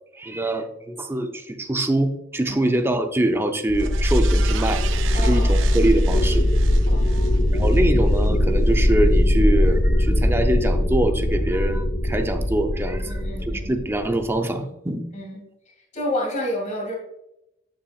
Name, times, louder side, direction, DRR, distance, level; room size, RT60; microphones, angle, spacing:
voice 1, 0.1-4.8 5.1-6.5 7.5-15.1, right 1 dB, 10° right, 6 dB, 0.6 m, -24 dB
sound 1, 3.7-14.3, left 1 dB, 60° left, 1.0 m, -20 dB
sound 2, 3.7-8.3 8.7-8.8, right 9 dB, 80° right, 0.5 m, -37 dB
voice 2, 5.1-5.6 6.9-7.6 13.1-13.7 15.1-15.4 15.7-17.0, left 1 dB, 35° left, -1 dB, 2.1 m, -30 dB
10.0 x 5.6 x 2.4 m, 0.88 s
head